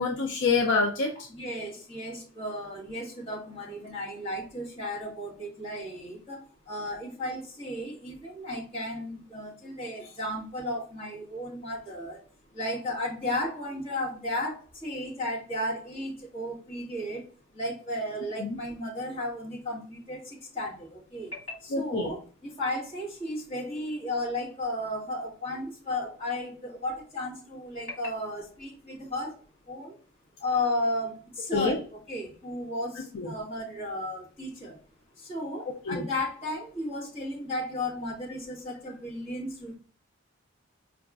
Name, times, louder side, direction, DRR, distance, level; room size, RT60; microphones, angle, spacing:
voice 1, 0.0-1.1 18.4-18.6 21.7-22.1 31.5-31.8 33.1-33.3 35.9-36.0, left 4 dB, 60° left, 1 dB, 0.4 m, -26 dB
voice 2, 1.3-12.2 12.5-17.2 17.5-29.4 29.7-29.9 30.4-34.8 35.2-39.8, left 1 dB, 30° left, -7 dB, 1.6 m, -34 dB
4.7 x 2.4 x 2.4 m, 0.40 s
head